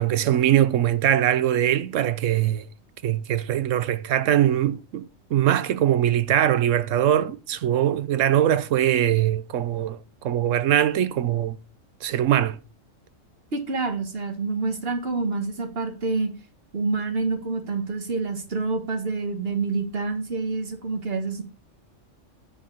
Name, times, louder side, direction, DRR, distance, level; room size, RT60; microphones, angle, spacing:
voice 1, 0.0-2.7 3.0-5.1 5.3-11.6 12.0-12.6, right 11 dB, 75° right, 1.0 m, -22 dB
voice 2, 13.5-16.3 16.7-21.4, right 3 dB, 50° right, 1.7 m, -27 dB
8.2 x 4.6 x 7.0 m
omnidirectional pair, 1.3 m